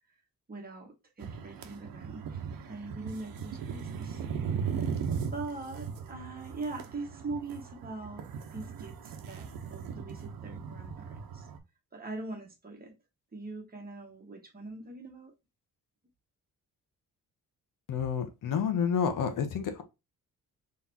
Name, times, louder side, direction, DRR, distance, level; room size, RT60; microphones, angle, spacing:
voice 1, 0.5-2.4 2.7-4.3 4.6-5.0 5.3-8.2 8.5-11.5 11.9-12.9 13.3-15.3, right 3 dB, 25° right, 1.5 m, -42 dB
sound 1, 1.2-11.6, right 6 dB, 80° right, 0.9 m, -38 dB
voice 2, 17.9-19.8, left 7 dB, 65° left, 1.0 m, -29 dB
3.9 x 3.3 x 2.7 m
cardioid pair, 130°, 34 cm